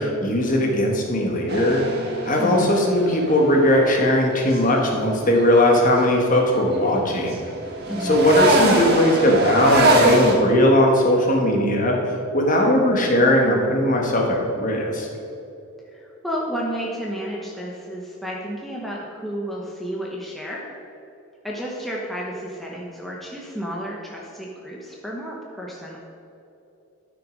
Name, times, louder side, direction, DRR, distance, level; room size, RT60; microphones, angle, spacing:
voice 1, 0.0-1.8 2.2-7.4 8.0-12.0 12.3-15.1, left 1 dB, 35° left, 0 dB, 1.6 m, -19 dB
sound 1, 1.5-6.0 6.3-10.3, right 1 dB, 45° right, 1.7 m, -23 dB
voice 2, 2.4-2.7 7.9-8.2 15.8-20.6 21.4-26.0, equal, ahead, -4 dB, 1.0 m, -31 dB
13.0 x 6.2 x 5.3 m, 2.9 s
head